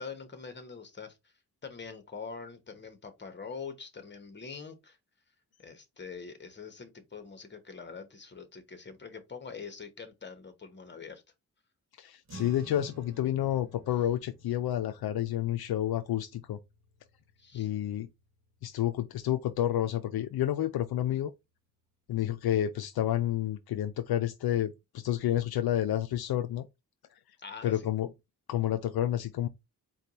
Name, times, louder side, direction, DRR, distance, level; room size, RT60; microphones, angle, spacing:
voice 1, 0.0-1.3 1.6-5.0 5.6-11.2 17.4-17.7 27.4-27.8, left 5 dB, 30° left, 1.0 m, -44 dB
voice 2, 12.0-16.6 17.5-18.1 18.6-21.3 22.1-26.7 27.6-28.1 28.5-29.5, left 12 dB, 75° left, 0.5 m, -30 dB
sound 1, 12.3-18.9, equal, 45° right, 1.2 m, -53 dB
4.4 x 2.3 x 4.0 m
wide cardioid pair, 110°, 37 cm